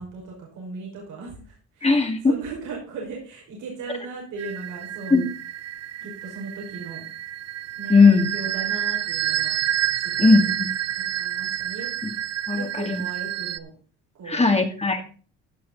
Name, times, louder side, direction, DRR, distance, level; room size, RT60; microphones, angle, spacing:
voice 1, 0.0-5.2 6.0-7.1 7.8-9.6 10.0-10.4 11.0-11.9 12.6-13.7 14.1-14.5, right 4 dB, 80° right, -2 dB, 5.6 m, -37 dB
voice 2, 1.8-2.3 5.1-5.3 7.9-8.3 10.2-10.7 12.5-13.0 14.3-15.0, left 4 dB, 20° left, 4 dB, 2.4 m, -18 dB
sound 1, 4.4-13.6, right 11 dB, 55° right, 0.8 m, -29 dB
16.5 x 6.5 x 4.0 m, 0.38 s
cardioid pair, 90°, 30 cm